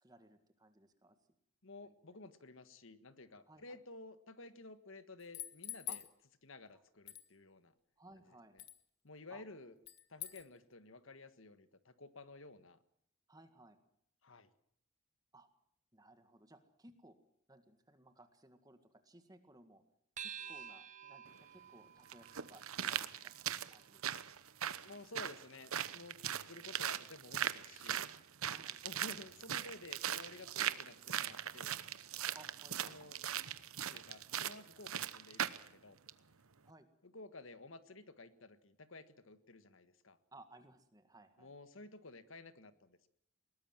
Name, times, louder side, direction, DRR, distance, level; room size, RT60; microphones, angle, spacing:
voice 1, 0.0-1.2 1.8-1.9 3.5-3.8 5.9-6.0 6.7-6.8 8.0-8.6 9.3-9.4 13.3-13.8 15.3-15.5 15.9-17.2 17.5-19.8 20.2-24.0 28.5-28.8 32.3-33.0 36.6-36.9 40.3-41.5, right 2 dB, 15° right, 8 dB, 1.8 m, -60 dB
voice 2, 1.6-6.0 6.4-7.7 8.5-8.6 9.0-9.7 10.1-12.8 14.2-14.5 24.8-26.2 26.5-28.1 28.8-31.8 32.8-33.2 33.7-36.0 37.0-40.2 41.4-43.1, left 2 dB, 65° left, 12 dB, 1.6 m, -53 dB
sound 1, 5.2-6.1 7.1-7.3 8.6-8.8 9.9-10.5, left 13 dB, 50° left, 1.4 m, -45 dB
sound 2, 20.2-24.9, right 8 dB, 35° right, 1.3 m, -52 dB
sound 3, 21.3-21.4 22.1-35.7 36.1-36.2, right 9 dB, 75° right, 1.0 m, -40 dB
21.5 x 19.0 x 7.5 m, 0.69 s
head